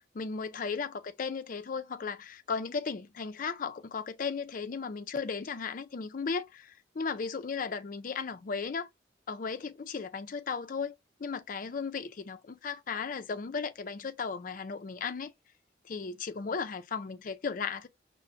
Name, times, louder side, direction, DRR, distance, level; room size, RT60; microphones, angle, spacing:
voice 1, 0.1-8.9 9.3-10.9 11.2-15.3 15.8-17.9, left 5 dB, 50° left, 0.4 m, -35 dB
5.5 x 2.1 x 2.5 m
head